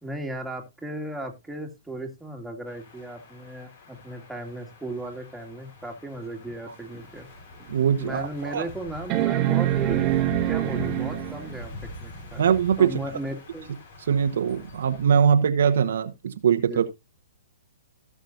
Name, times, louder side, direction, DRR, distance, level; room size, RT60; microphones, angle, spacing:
voice 1, 0.0-7.3 8.0-11.7 12.0-12.4 12.8-13.7 16.7-16.8, right 1 dB, 5° right, 2.2 m, -36 dB
sound 1, 2.7-15.1, left 1 dB, 55° left, 4.9 m, -41 dB
sound 2, 6.9-7.0 7.6-7.7 9.1-11.6 13.3-13.4, right 15 dB, 30° right, 1.3 m, -25 dB
voice 2, 7.7-8.6 12.4-12.9 14.1-16.9, right 7 dB, 65° right, 1.1 m, -22 dB
17.0 x 6.3 x 2.6 m
hypercardioid pair, 125°, 0 cm